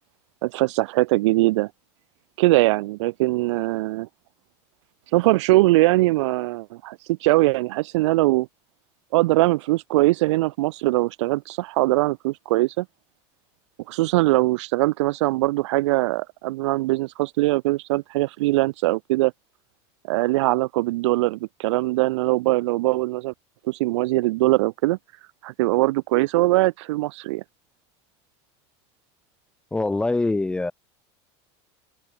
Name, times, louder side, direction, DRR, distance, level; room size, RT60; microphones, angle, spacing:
voice 1, 0.4-1.7 2.4-4.1 5.1-8.5 9.1-12.8 13.9-19.3 20.1-23.3 23.7-25.0 25.4-27.4, right 19 dB, 85° right, 1.3 m, -21 dB
voice 2, 29.7-30.7, left 2 dB, 5° left, 0.6 m, -23 dB
open air
supercardioid pair, 160°, 15 cm